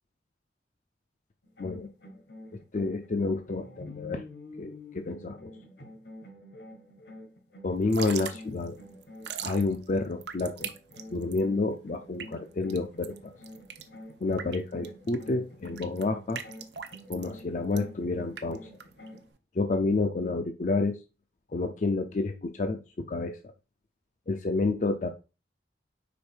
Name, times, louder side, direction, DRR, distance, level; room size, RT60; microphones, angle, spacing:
sound 1, 1.4-10.3 10.6-19.3, left 1 dB, 75° left, 1.3 m, -48 dB
voice 1, 2.7-4.2 4.6-5.5 7.6-8.8 9.4-10.7 11.1-13.3 14.2-16.4 17.1-18.6 19.5-21.0 21.5-23.4 24.3-25.1, left 3 dB, 45° left, 6 dB, 0.4 m, -29 dB
Drip / Trickle dribble, 7.8-19.4, right 8 dB, 75° right, 0.7 m, -42 dB
5.1 x 4.2 x 4.4 m, 0.31 s
head